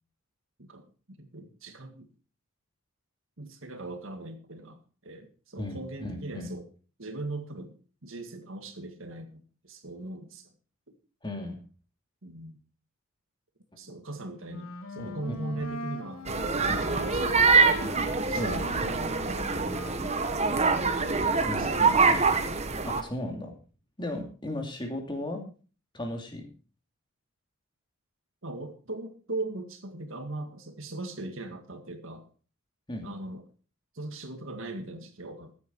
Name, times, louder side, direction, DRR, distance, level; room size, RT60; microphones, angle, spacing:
voice 1, 0.6-2.1 3.4-6.6 7.0-7.7 8.0-10.5 12.2-12.6 13.8-17.8 18.1-19.5 19.8-20.5 20.8-21.7 24.1-24.2 28.4-32.3 33.0-33.4 34.0-35.5, right 2 dB, 60° right, 7 dB, 1.9 m, -40 dB
voice 2, 5.6-6.5 11.2-11.6 15.0-15.7 16.7-16.8 18.3-18.6 21.4-22.4 22.8-23.5 24.0-25.4 25.9-26.5 32.9-33.1, left 1 dB, 20° left, 3 dB, 2.7 m, -36 dB
Wind instrument woodwind instrument, 14.5-20.1, equal, 75° left, 2.0 m, -40 dB
sound 1, 16.3-23.0, right 4 dB, 30° right, 1.2 m, -25 dB
14.5 x 9.5 x 4.6 m, 0.37 s
head